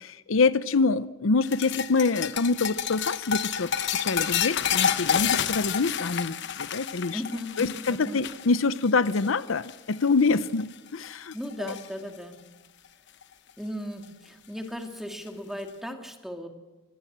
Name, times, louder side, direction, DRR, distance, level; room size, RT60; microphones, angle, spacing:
voice 1, 0.0-7.2 7.6-11.7, left 4 dB, 75° left, 15 dB, 0.7 m, -26 dB
sound 1, 1.4-10.0 10.2-10.6 11.0-11.9 13.2-13.3 14.6-14.7, left 8 dB, 60° left, 1.0 m, -29 dB
voice 2, 7.1-8.2 11.3-12.4 13.6-16.5, equal, ahead, 4 dB, 2.5 m, -36 dB
25.5 x 20.0 x 7.5 m, 1.2 s
head